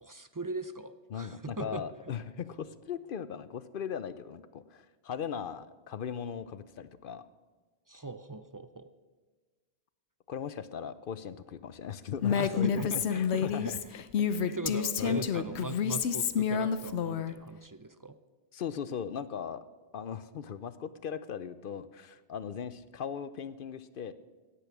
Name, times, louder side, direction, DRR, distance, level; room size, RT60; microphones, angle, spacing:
voice 1, 0.0-1.8 7.9-8.9 12.3-13.7 14.2-18.2, right 2 dB, 25° right, 11 dB, 0.4 m, -40 dB
voice 2, 1.1-7.2 10.3-13.8 14.5-14.7 15.0-15.5 18.5-19.6 19.9-24.1, left 7 dB, 60° left, 14 dB, 0.7 m, -38 dB
Female speech woman speaking, 12.2-17.3, left 7 dB, 85° left, 1.0 m, -29 dB
17.0 x 10.0 x 6.1 m, 1.4 s
omnidirectional pair, 1.1 m